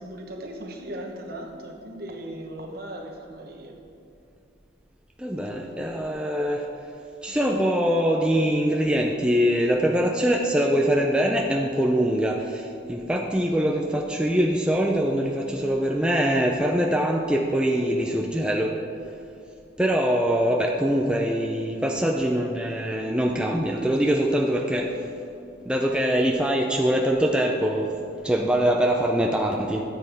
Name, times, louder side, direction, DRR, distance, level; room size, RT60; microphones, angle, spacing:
voice 1, 0.0-3.8, right 1 dB, 50° right, 1 dB, 1.1 m, -37 dB
voice 2, 5.2-6.7 7.2-18.7 19.8-24.9 25.7-27.9 28.2-29.8, equal, 5° right, 0 dB, 0.4 m, -23 dB
13.0 x 7.7 x 3.5 m, 2.6 s
head